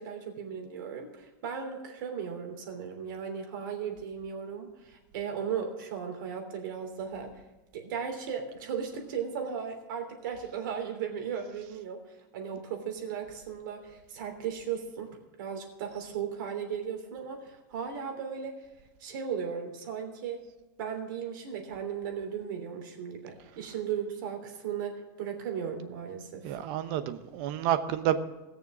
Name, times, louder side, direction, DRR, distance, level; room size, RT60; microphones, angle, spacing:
voice 1, 0.0-7.4 7.7-15.1 15.4-18.5 19.0-20.4 20.8-26.6, right 7 dB, 75° right, 3 dB, 3.2 m, -36 dB
voice 2, 26.4-28.2, right 11 dB, 45° right, 11 dB, 0.9 m, -29 dB
18.0 x 6.8 x 6.1 m, 1.1 s
supercardioid pair, 170°, 11 cm